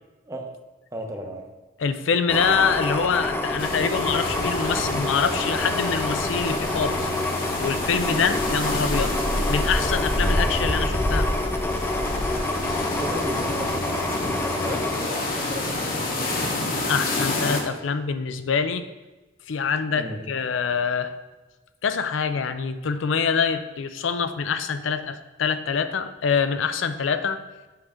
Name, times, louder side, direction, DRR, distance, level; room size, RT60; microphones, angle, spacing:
voice 1, 0.9-1.5 12.9-16.4 19.9-20.3, equal, 15° right, 3 dB, 0.8 m, -35 dB
voice 2, 1.8-7.1 7.6-9.1 9.5-11.3 16.9-18.8 19.5-21.1 21.8-27.4, left 6 dB, 85° left, 10 dB, 0.5 m, -25 dB
sound 1, 2.3-16.0 16.4-16.6, left 1 dB, 10° left, 0.6 m, -27 dB
sound 2, 3.6-17.6, left 2 dB, 50° left, 1.2 m, -30 dB
7.6 x 6.4 x 3.6 m, 1.2 s
head